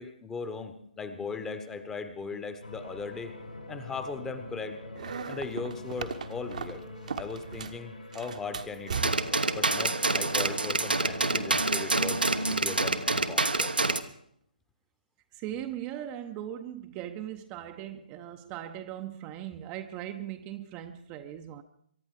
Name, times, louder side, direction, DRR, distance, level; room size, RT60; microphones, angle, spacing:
voice 1, 0.0-3.3 3.7-4.8 5.3-6.8 7.2-9.2 9.5-13.7, left 4 dB, 10° left, 1.0 m, -38 dB
sound 1, 2.6-12.7, equal, 75° left, 6.1 m, -41 dB
sound 2, 4.9-7.8 8.1-9.4, right 6 dB, 55° right, 1.1 m, -37 dB
sound 3, 8.9-14.0, right 3 dB, 80° right, 1.1 m, -27 dB
voice 2, 15.3-21.6, right 11 dB, 20° right, 0.7 m, -39 dB
23.5 x 11.5 x 4.8 m
figure-of-eight pair, 135°, 5 cm